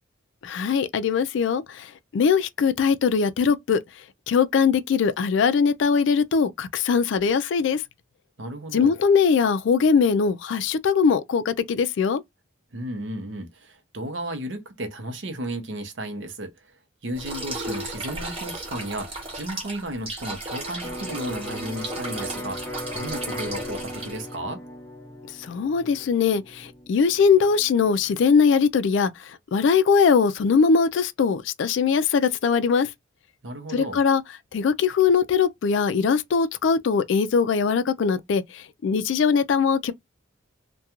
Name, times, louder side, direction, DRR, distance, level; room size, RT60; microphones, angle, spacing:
voice 1, 0.4-3.8 4.3-7.8 8.7-12.2 25.4-32.9 33.7-34.2 34.5-39.9, left 6 dB, 60° left, 0.3 m, -21 dB
voice 2, 8.4-8.9 12.7-16.7 17.0-24.6 33.4-34.0, right 1 dB, 60° right, 0.6 m, -34 dB
sound 1, 17.2-24.4, right 2 dB, 25° right, 0.8 m, -35 dB
Electric guitar, 20.8-28.6, equal, 5° left, 0.6 m, -38 dB
2.4 x 2.2 x 2.8 m
head